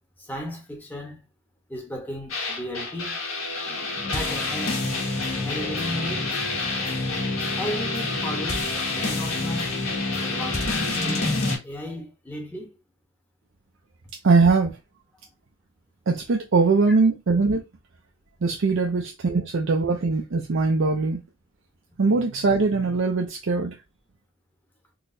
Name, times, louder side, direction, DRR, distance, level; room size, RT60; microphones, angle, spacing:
voice 1, 0.2-1.2 1.7-3.1 4.1-4.9 5.4-6.3 7.6-9.7 10.2-11.3 11.6-12.8 16.9-17.0, left 1 dB, 10° left, 0.9 m, -35 dB
sound 1, 2.3-11.6, left 3 dB, 80° left, 1.5 m, -27 dB
voice 2, 14.2-14.8 16.1-17.6 18.4-21.2 22.0-23.7, right 4 dB, 60° right, 0.5 m, -21 dB
3.9 x 2.9 x 2.6 m
head